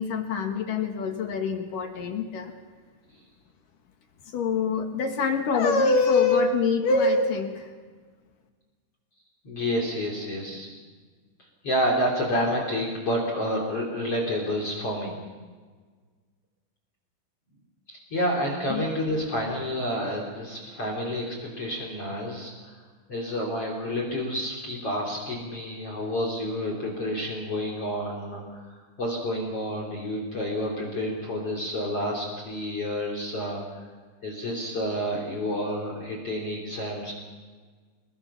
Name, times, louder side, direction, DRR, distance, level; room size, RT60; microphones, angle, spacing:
voice 1, 0.0-2.5 4.3-7.7 18.7-18.9, left 4 dB, 60° left, 5 dB, 2.6 m, -24 dB
voice 2, 9.4-10.7 11.6-15.2 17.9-22.7 23.1-28.7 29.0-33.9 34.2-37.1, equal, 35° left, 0 dB, 3.9 m, -29 dB
28.0 x 21.5 x 5.8 m, 1.5 s
omnidirectional pair, 5.3 m